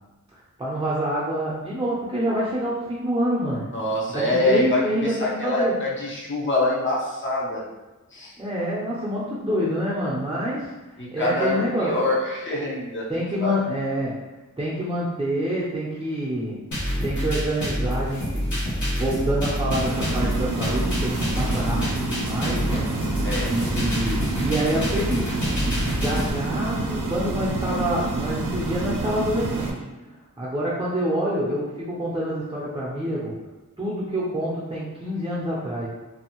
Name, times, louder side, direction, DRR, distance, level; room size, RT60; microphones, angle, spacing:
voice 1, 0.6-3.7 4.1-5.7 8.4-10.7 11.1-11.9 13.1-14.2 14.6-16.6 17.0-18.4 18.9-25.5 25.9-29.8 30.4-33.4 33.8-35.9, equal, 15° right, -6 dB, 0.6 m, -27 dB
voice 2, 3.7-7.6 8.1-8.4 11.0-13.1 13.4-13.5 21.3-21.8 23.2-23.5, left 2 dB, 35° left, -5 dB, 0.7 m, -25 dB
sound 1, 16.7-26.3, equal, 60° left, 1.2 m, -27 dB
sound 2, 19.7-29.7, right 2 dB, 70° right, 0.5 m, -28 dB
2.6 x 2.5 x 2.9 m, 1.1 s
wide cardioid pair, 50°, 33 cm